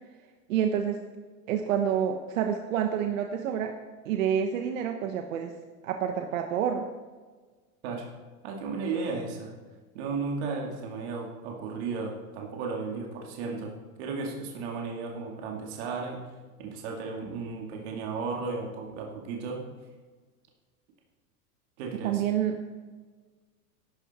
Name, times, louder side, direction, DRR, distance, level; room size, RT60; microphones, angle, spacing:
voice 1, 0.5-1.0 1.5-3.7 4.0-5.5 5.8-6.9 22.0-22.5, right 8 dB, 60° right, 5 dB, 1.2 m, -28 dB
voice 2, 7.8-8.1 8.4-9.6 9.9-16.2 16.6-19.6 21.8-22.2, right 4 dB, 45° right, 0 dB, 2.3 m, -34 dB
14.5 x 12.0 x 4.3 m, 1.4 s
supercardioid pair, 170°, 44 cm